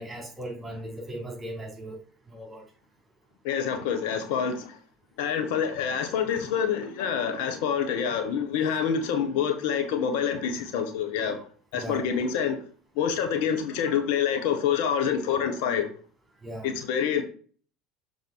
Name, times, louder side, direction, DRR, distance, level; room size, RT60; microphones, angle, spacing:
voice 1, 0.0-2.0 2.3-2.6 11.7-12.0 13.8-14.0 16.4-16.7, right 1 dB, 20° right, 4.0 m, -38 dB
voice 2, 3.4-4.6 5.2-11.4 11.7-12.6 13.0-15.9 16.6-17.2, left 7 dB, 65° left, 1.2 m, -27 dB
6.8 x 4.7 x 4.7 m
hypercardioid pair, 70°, 0 cm